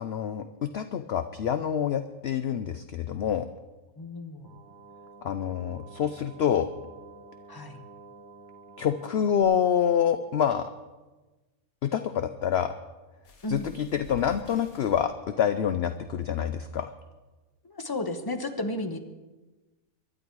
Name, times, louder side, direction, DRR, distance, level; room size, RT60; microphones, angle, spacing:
voice 1, 0.0-3.5 5.2-6.7 8.8-10.7 11.8-12.7 13.5-16.9, left 8 dB, 60° left, 10 dB, 0.7 m, -27 dB
voice 2, 4.0-4.5 7.5-7.8 13.4-13.7 17.6-19.0, left 1 dB, 15° left, 7 dB, 1.1 m, -33 dB
sound 1, 4.4-9.4, right 3 dB, 15° right, 7.3 m, -50 dB
sound 2, 13.2-15.0 16.0-16.1 16.5-16.6, left 3 dB, 80° left, 1.9 m, -47 dB
23.5 x 11.5 x 4.7 m, 1.2 s
omnidirectional pair, 1.5 m